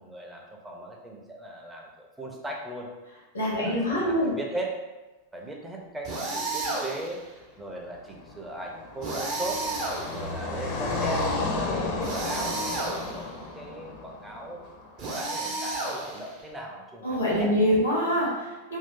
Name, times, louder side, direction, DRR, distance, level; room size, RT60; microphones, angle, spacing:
voice 1, 0.0-2.9 3.5-4.9 5.3-7.2 7.6-9.7 10.1-14.6 15.0-17.6, right 1 dB, 10° right, -1 dB, 0.6 m, -38 dB
voice 2, 3.3-4.3 17.0-18.8, equal, 75° left, -4 dB, 1.0 m, -25 dB
sound 1, 6.0-7.2 9.0-10.5 12.0-13.3 15.0-16.4, right 2 dB, 40° right, 0.8 m, -32 dB
Car passing by, 8.0-15.2, left 3 dB, 40° left, 0.7 m, -33 dB
2.7 x 2.5 x 3.6 m, 1.1 s
figure-of-eight pair, 90°, 0 cm